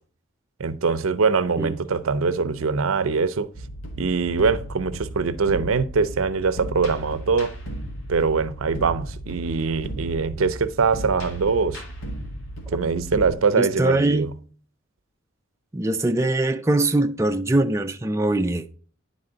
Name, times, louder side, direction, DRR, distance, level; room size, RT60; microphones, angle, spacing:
voice 1, 0.6-3.5 4.0-7.5 8.1-11.8 12.7-14.3, right 5 dB, 90° right, 0.6 m, -23 dB
sound 1, 3.5-13.3, right 1 dB, 85° left, 1.8 m, -35 dB
voice 2, 13.6-14.3 15.7-18.7, right 2 dB, 15° right, 0.4 m, -22 dB
9.9 x 4.1 x 3.8 m
head